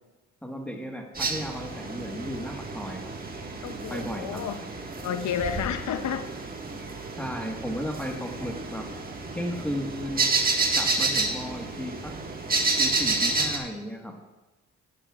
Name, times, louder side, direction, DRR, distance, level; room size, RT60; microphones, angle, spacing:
voice 1, 0.4-3.1 3.9-4.4 7.2-8.9 9.3-10.3 10.7-12.1 12.8-14.2, equal, 5° left, 0 dB, 1.5 m, -34 dB
sound 1, 1.1-13.6, right 3 dB, 30° right, 1.7 m, -30 dB
voice 2, 3.6-4.6 5.0-6.3, left 8 dB, 70° left, 9 dB, 0.7 m, -31 dB
15.5 x 12.0 x 2.5 m, 1.1 s
cardioid pair, 90°, 30 cm